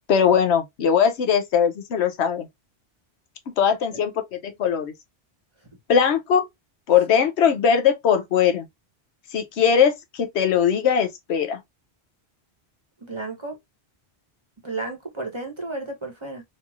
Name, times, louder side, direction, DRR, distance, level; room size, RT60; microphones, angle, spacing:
voice 1, 0.1-2.5 3.6-4.9 5.9-6.5 6.9-8.7 9.3-11.6, left 7 dB, 90° left, 1.0 m, -20 dB
voice 2, 13.0-13.6 14.6-16.4, right 2 dB, 30° right, 0.9 m, -33 dB
3.1 x 2.6 x 2.4 m
omnidirectional pair, 1.1 m